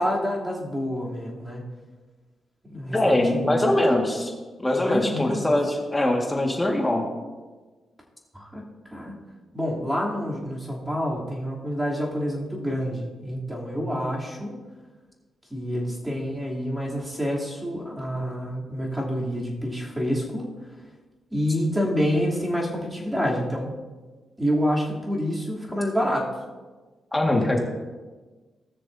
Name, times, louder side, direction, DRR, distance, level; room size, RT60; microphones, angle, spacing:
voice 1, 0.0-1.6 2.7-3.6 4.8-5.6 8.3-8.6 8.9-9.1 9.5-14.5 15.5-20.4 21.3-23.7 24.4-26.3, equal, 10° right, -4 dB, 3.2 m, -27 dB
voice 2, 2.9-4.3 4.6-7.1 27.1-27.6, left 1 dB, 20° left, 1 dB, 1.9 m, -22 dB
19.0 x 6.5 x 2.8 m, 1.3 s
supercardioid pair, 60°, 0 cm